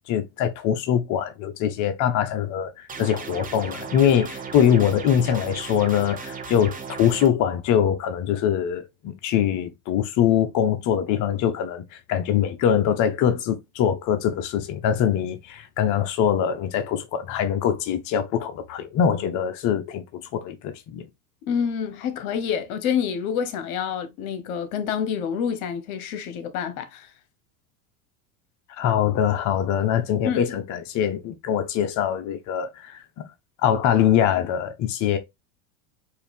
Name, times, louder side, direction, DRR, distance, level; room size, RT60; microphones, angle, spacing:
voice 1, 0.1-20.0 20.3-21.1 28.8-33.2 33.6-35.2, left 9 dB, 45° left, 0.7 m, -23 dB
sound 1, 2.9-7.3, right 5 dB, 20° right, 0.8 m, -36 dB
voice 2, 21.4-27.1 30.2-30.4, left 7 dB, 75° left, 1.1 m, -27 dB
4.4 x 2.6 x 3.5 m
supercardioid pair, 105°, 44 cm